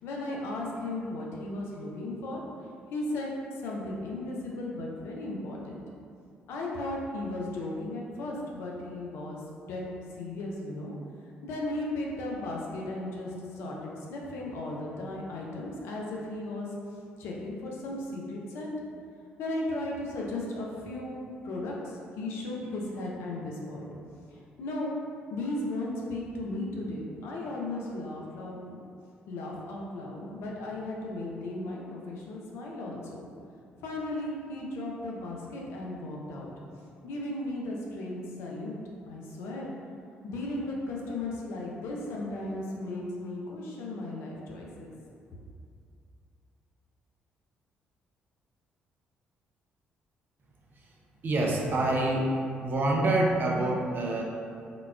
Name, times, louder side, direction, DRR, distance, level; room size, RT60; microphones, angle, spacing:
voice 1, 0.0-2.4 2.9-3.3 3.6-5.8 6.5-9.4 9.7-9.8 10.2-10.9 11.4-13.3 13.6-16.7 17.2-18.7 19.4-21.7 22.2-23.8 24.6-25.0 25.3-28.8 29.3-33.2 33.8-36.5 37.0-38.8 39.1-39.7 40.2-44.9, left 2 dB, 75° left, -2 dB, 0.5 m, -35 dB
voice 2, 51.2-52.3 52.6-54.2, right 2 dB, 50° right, -1 dB, 0.5 m, -26 dB
3.8 x 2.3 x 2.3 m, 2.4 s
hypercardioid pair, 55°, 4 cm